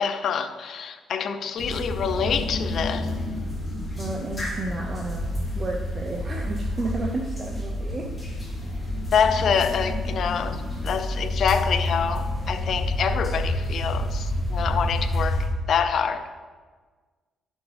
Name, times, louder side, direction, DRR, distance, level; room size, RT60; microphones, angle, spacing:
voice 1, 0.0-3.1 9.1-16.4, left 7 dB, 60° left, 10 dB, 0.6 m, -26 dB
sound 1, 1.6-15.5, left 1 dB, 15° left, 2.5 m, -29 dB
voice 2, 4.0-8.1, right 2 dB, 35° right, 1 dB, 0.8 m, -32 dB
11.0 x 6.2 x 3.4 m, 1.4 s
cardioid pair, 90°, 0 cm